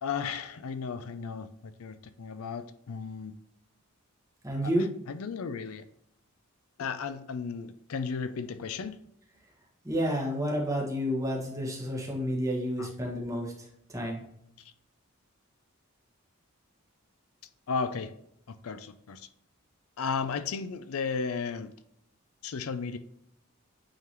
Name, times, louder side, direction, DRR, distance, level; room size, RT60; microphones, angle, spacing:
voice 1, 0.0-3.3 4.6-5.8 6.8-9.0 12.8-12.9 14.6-14.7 17.7-18.1 18.5-19.3 20.0-21.7 22.4-23.0, left 5 dB, 75° left, 0.5 m, -34 dB
voice 2, 4.4-4.9 9.8-14.2, equal, 15° right, 1.4 m, -30 dB
8.7 x 3.7 x 3.0 m
head